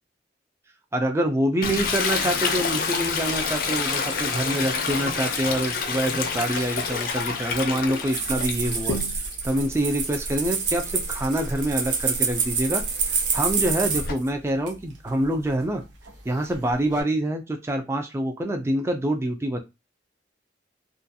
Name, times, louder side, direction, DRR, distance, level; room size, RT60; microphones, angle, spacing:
voice 1, 0.9-12.8 13.1-15.8 16.3-19.6, right 1 dB, 15° right, 5 dB, 0.3 m, -26 dB
Toilet flush, 1.6-9.4 9.8-14.1, left 5 dB, 50° left, 0.5 m, -29 dB
sound 1, 8.1-14.3 14.7-14.8 15.6-16.1 16.4-17.0, right 5 dB, 85° right, 0.6 m, -27 dB
2.4 x 2.3 x 2.6 m, 0.24 s
head